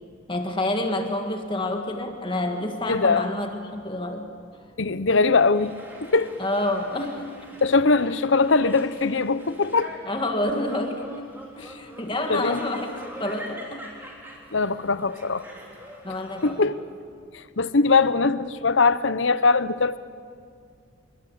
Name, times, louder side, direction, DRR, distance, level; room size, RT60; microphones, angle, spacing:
voice 1, 0.3-4.3 6.4-7.3 10.1-11.0 11.6-12.9 13.2-13.9 16.0-16.6, left 1 dB, 25° left, 4 dB, 1.8 m, -28 dB
voice 2, 2.9-3.3 4.8-5.7 6.0-6.3 7.6-9.9 12.3-12.7 14.5-15.4 16.4-16.8 17.3-20.0, left 4 dB, 65° left, 15 dB, 0.8 m, -21 dB
sound 1, 5.5-16.5, equal, 10° right, 3.9 m, -44 dB
27.0 x 23.0 x 8.7 m, 2.3 s
head